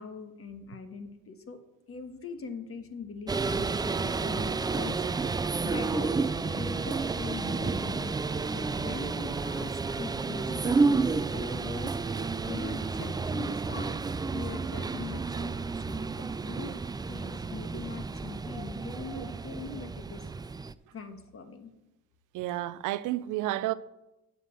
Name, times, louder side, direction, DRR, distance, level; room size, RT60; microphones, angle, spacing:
voice 1, 0.0-1.6 1.9-5.4 5.6-12.0 12.5-14.0 14.3-16.8 17.1-20.3 20.9-21.7, left 4 dB, 50° left, 1.4 m, -42 dB
sound 1, 3.3-20.7, right 4 dB, 15° right, 0.3 m, -31 dB
voice 2, 22.3-23.7, right 15 dB, 90° right, 0.5 m, -32 dB
9.4 x 5.7 x 7.4 m
cardioid pair, 90°, 30 cm